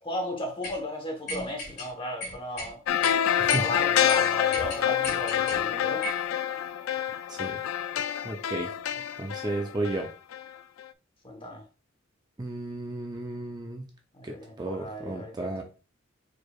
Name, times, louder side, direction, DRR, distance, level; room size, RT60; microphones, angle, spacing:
voice 1, 0.0-2.8 3.6-6.1 11.2-11.6 14.1-15.6, left 1 dB, 25° left, 1.1 m, -35 dB
sound 1, 0.6-0.8 1.3-1.9 2.2-2.7 3.0-3.1 3.5-3.7 4.1-4.2 4.5-5.6 6.0-6.2, left 2 dB, 55° left, 2.3 m, -35 dB
sound 2, 2.9-10.5 10.8-10.9, left 10 dB, 85° left, 0.3 m, -27 dB
voice 2, 8.2-8.7 9.2-10.1 12.4-13.9 14.2-15.6, right 2 dB, 20° right, 0.4 m, -33 dB
4.6 x 4.6 x 2.4 m
head